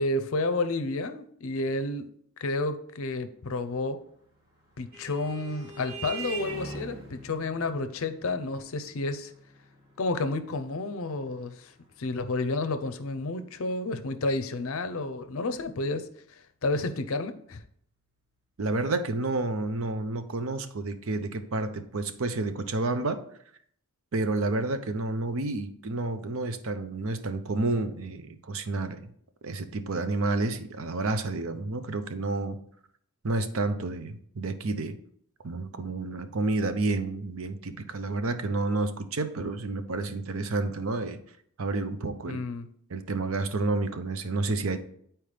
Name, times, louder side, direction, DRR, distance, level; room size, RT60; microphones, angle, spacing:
voice 1, 0.0-2.1 2.4-4.0 4.8-9.3 10.0-11.7 12.0-16.1 16.6-17.6 42.3-42.7, left 2 dB, 65° left, 10 dB, 0.6 m, -30 dB
Vehicle horn car horn honking, 4.3-13.3, right 3 dB, 40° right, 3.1 m, -44 dB
voice 2, 18.6-23.2 24.1-29.0 29.4-32.6 33.2-35.0 35.4-41.2 41.6-42.4 42.9-44.8, right 2 dB, 60° right, 9 dB, 0.6 m, -30 dB
8.9 x 4.4 x 3.3 m, 0.64 s
head